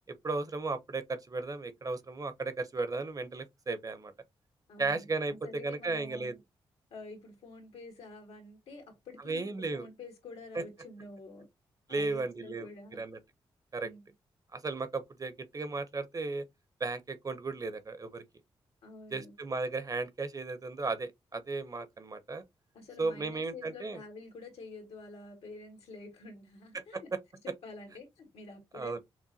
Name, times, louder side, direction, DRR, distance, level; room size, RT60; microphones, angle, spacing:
voice 1, 0.1-4.1 4.8-5.3 5.6-6.3 9.3-9.9 11.9-12.7 13.0-13.2 13.7-13.9 14.5-16.4 16.8-18.2 19.1-22.4 23.0-24.0 26.7-27.0 28.7-29.0, right 3 dB, 35° right, 0.7 m, -35 dB
voice 2, 4.7-6.4 6.9-11.5 11.9-13.0 13.8-14.1 18.8-19.3 22.7-27.1 27.4-29.0, left 3 dB, 85° left, 1.5 m, -48 dB
5.9 x 2.1 x 2.7 m
cardioid pair, 60°, 10 cm